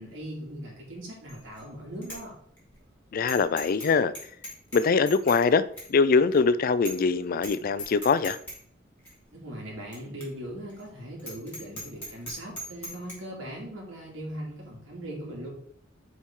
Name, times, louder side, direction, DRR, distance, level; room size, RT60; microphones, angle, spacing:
voice 1, 0.0-2.3 9.3-15.5, right 1 dB, 90° right, -3 dB, 2.6 m, -39 dB
Bicycle bell, 1.3-1.6 2.0-2.2 2.6-2.7 3.3-3.9 4.1-5.4 5.8-5.9 6.3-6.4 6.8-7.1 7.4-7.5 7.8-8.6 9.0-9.1 9.9-10.0 10.2-10.3 10.7-10.8 11.2-13.1, equal, 10° left, 3.4 m, -39 dB
voice 2, 3.1-4.1 4.7-5.6 5.9-8.4, left 4 dB, 50° left, 15 dB, 0.4 m, -23 dB
8.3 x 4.7 x 3.7 m, 0.62 s
head